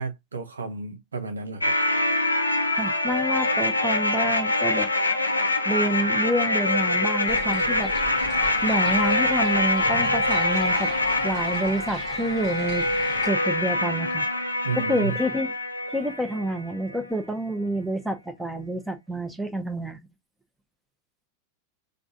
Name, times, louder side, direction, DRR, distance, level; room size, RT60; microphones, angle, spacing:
voice 1, 0.0-1.7 14.6-15.2, right 4 dB, 75° right, 1.0 m, -32 dB
sound 1, 1.6-16.6 16.9-17.0, left 2 dB, 80° left, 0.6 m, -24 dB
voice 2, 2.7-4.9 5.6-7.9 8.6-10.9 11.2-12.9 13.2-14.2 14.7-15.5 15.9-20.0, right 1 dB, 5° right, 0.9 m, -28 dB
sound 2, 7.3-13.3, right 7 dB, 40° right, 1.1 m, -38 dB
3.8 x 3.6 x 3.8 m
figure-of-eight pair, 90°, 0 cm